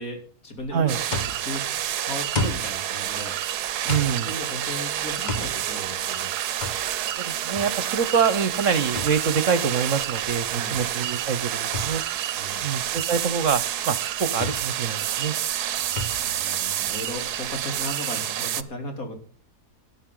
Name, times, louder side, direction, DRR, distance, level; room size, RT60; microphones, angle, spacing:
voice 1, 0.0-1.8 2.0-4.0 4.2-6.3 10.5-10.8 12.3-12.6 15.8-19.1, left 1 dB, 60° left, 3 dB, 3.8 m, -36 dB
sound 1, 0.6-17.8, left 2 dB, 30° left, 1.4 m, -36 dB
sound 2, 0.9-18.6, right 11 dB, 85° right, 1.3 m, -29 dB
voice 2, 3.9-4.3 7.1-12.0 12.6-15.3, right 6 dB, 55° right, 14 dB, 1.3 m, -25 dB
15.0 x 11.0 x 3.8 m, 0.44 s
omnidirectional pair, 1.7 m